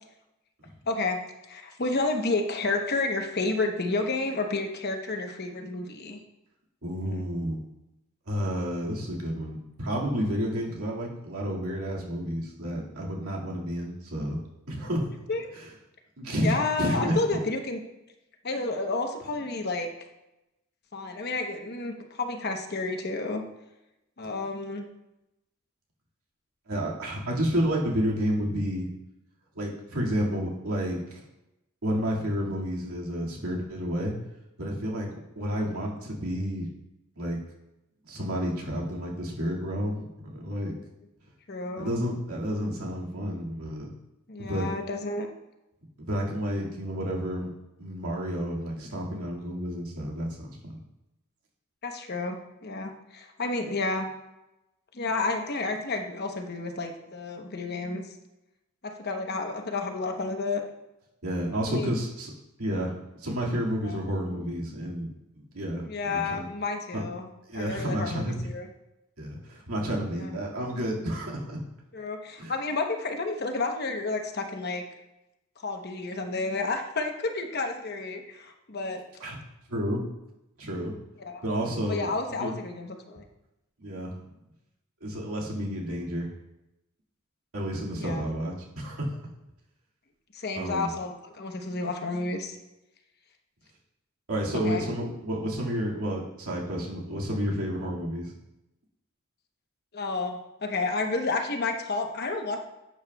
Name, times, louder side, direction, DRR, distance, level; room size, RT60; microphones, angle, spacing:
voice 1, 0.9-1.2 1.5-6.2 7.0-7.2 15.3-15.5 16.4-17.8 18.4-19.9 20.9-23.4 24.2-24.8 41.5-41.9 44.3-45.3 51.8-54.1 54.9-58.0 58.8-60.6 61.7-61.9 63.8-64.0 65.8-67.3 67.5-68.7 70.1-70.3 71.9-74.8 75.6-79.0 81.2-81.4 81.9-83.2 88.0-88.2 90.3-92.6 94.6-94.8 99.9-102.6, left 3 dB, 50° left, 4 dB, 1.0 m, -31 dB
voice 2, 6.8-7.6 8.3-14.4 14.7-15.1 15.5-15.7 16.2-17.2 26.7-28.9 29.6-31.2 31.8-34.1 34.6-36.7 37.2-37.4 38.1-40.7 41.8-43.9 44.5-44.7 46.0-47.5 47.8-50.8 61.2-62.3 62.6-66.5 66.9-67.0 67.5-68.5 69.2-71.6 72.4-72.5 79.2-79.4 79.7-80.0 80.6-81.0 81.4-82.1 82.4-82.5 83.8-84.1 85.0-86.3 87.5-89.1 90.5-90.9 94.3-98.3, equal, 90° right, -3 dB, 2.1 m, -30 dB
11.0 x 8.5 x 2.3 m, 0.94 s
head